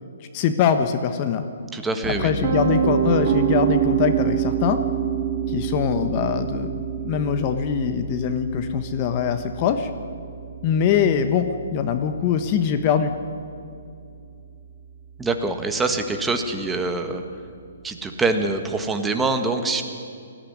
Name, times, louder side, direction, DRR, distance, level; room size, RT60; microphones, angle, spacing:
voice 1, 0.3-1.4 2.1-4.8 5.5-9.9 10.6-13.1, left 8 dB, 35° left, 8 dB, 1.3 m, -23 dB
voice 2, 1.7-2.3 15.2-17.2 17.8-19.8, right 3 dB, 10° right, 5 dB, 1.6 m, -24 dB
Piano, 2.0-13.9, right 9 dB, 50° right, 2.3 m, -27 dB
19.5 x 14.5 x 9.6 m, 2.4 s
hypercardioid pair, 145°, 0 cm